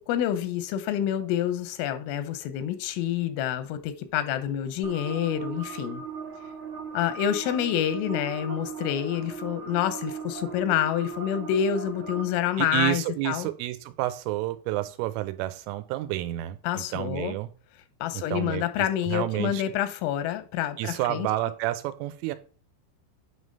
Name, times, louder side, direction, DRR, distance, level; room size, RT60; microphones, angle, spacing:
voice 1, 0.0-6.0 6.9-13.5 16.6-17.3 18.0-21.3, left 10 dB, 90° left, 3.4 m, -28 dB
sound 1, 4.8-12.2, right 6 dB, 60° right, 1.7 m, -38 dB
voice 2, 12.6-17.5 18.1-19.6 20.8-22.4, right 16 dB, 90° right, 3.2 m, -30 dB
8.7 x 3.2 x 5.3 m
omnidirectional pair, 5.7 m